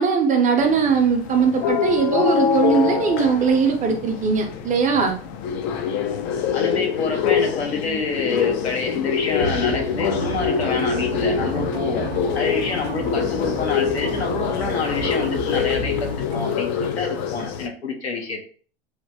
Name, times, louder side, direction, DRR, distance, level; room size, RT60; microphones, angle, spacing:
voice 1, 0.0-5.2, right 5 dB, 25° right, 4 dB, 0.6 m, -20 dB
sound 1, 0.6-17.7, left 7 dB, 40° left, 0.4 m, -25 dB
voice 2, 6.5-12.1 12.3-18.4, left 4 dB, 85° left, 2 dB, 0.8 m, -27 dB
sound 2, 9.4-16.6, right 3 dB, 75° right, 0.6 m, -32 dB
3.1 x 2.1 x 2.8 m, 0.42 s
hypercardioid pair, 95°, 31 cm